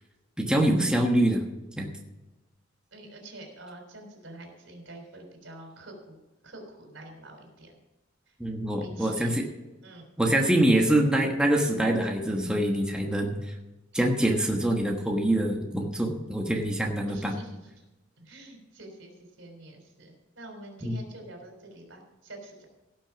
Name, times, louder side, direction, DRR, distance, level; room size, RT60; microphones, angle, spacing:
voice 1, 0.4-1.4 1.8-1.9 8.4-9.4 10.2-13.4 13.9-17.3 20.8-21.0, right 1 dB, 5° right, 1 dB, 1.3 m, -25 dB
voice 2, 2.9-6.2 6.4-7.8 8.3-8.4 8.8-9.3 9.8-10.0 17.1-17.6 18.2-22.7, right 2 dB, 80° right, 2 dB, 3.8 m, -46 dB
17.5 x 6.2 x 5.9 m, 1.1 s
head